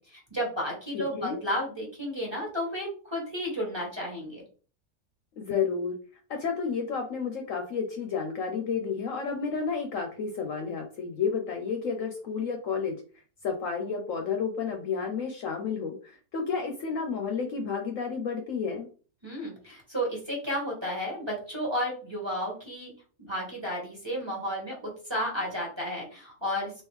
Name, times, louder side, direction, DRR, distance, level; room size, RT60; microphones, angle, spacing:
voice 1, 0.0-4.4 19.2-22.9 23.2-26.7, equal, 20° right, -3 dB, 1.1 m, -32 dB
voice 2, 0.9-1.4 5.4-6.0 6.3-13.0 13.4-18.9, left 5 dB, 65° left, 4 dB, 0.9 m, -31 dB
3.6 x 2.9 x 3.1 m, 0.39 s
omnidirectional pair, 1.7 m